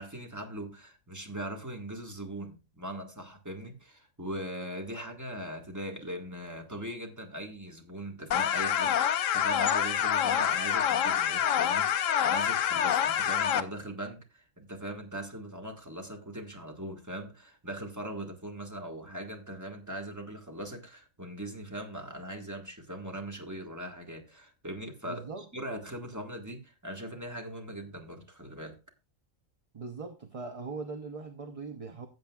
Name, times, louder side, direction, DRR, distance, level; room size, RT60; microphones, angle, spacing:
voice 1, 0.0-28.8, right 1 dB, 15° right, 1.5 m, -40 dB
sound 1, 8.3-13.6, left 9 dB, 85° left, 1.1 m, -26 dB
voice 2, 25.0-25.5 29.7-32.1, right 4 dB, 35° right, 0.7 m, -40 dB
15.5 x 7.6 x 2.3 m
omnidirectional pair, 1.3 m